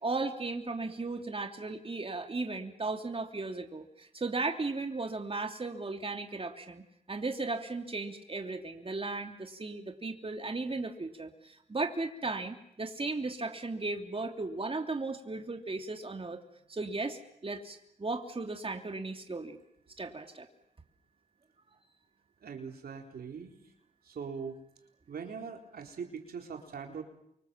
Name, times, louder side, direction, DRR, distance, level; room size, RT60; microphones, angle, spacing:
voice 1, 0.0-6.8 7.1-16.4 16.7-19.6 20.0-20.5, right 3 dB, 35° right, 4 dB, 3.1 m, -36 dB
voice 2, 22.4-23.5 24.1-24.6 25.1-27.0, right 6 dB, 75° right, 3 dB, 4.0 m, -41 dB
29.0 x 25.0 x 7.6 m, 0.75 s
supercardioid pair, 45°, 16 cm